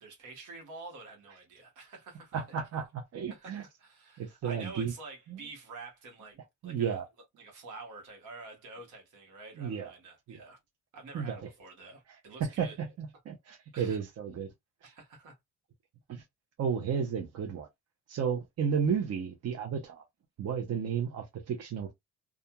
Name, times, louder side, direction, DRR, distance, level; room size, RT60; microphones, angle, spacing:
voice 1, 0.0-2.4 3.3-7.0 7.4-10.6 10.9-12.8 13.7-14.0 14.8-15.3, right 3 dB, 85° right, 1.2 m, -48 dB
voice 2, 2.3-3.6 4.2-4.9 5.3-5.4 6.6-7.0 9.6-9.9 10.3-10.4 11.1-11.4 12.4-14.5 14.8-14.9 16.1-16.2 16.6-17.7 18.1-20.0 20.4-21.9, right 7 dB, 55° right, 0.7 m, -33 dB
2.4 x 2.2 x 2.8 m
cardioid pair, 90°, 30 cm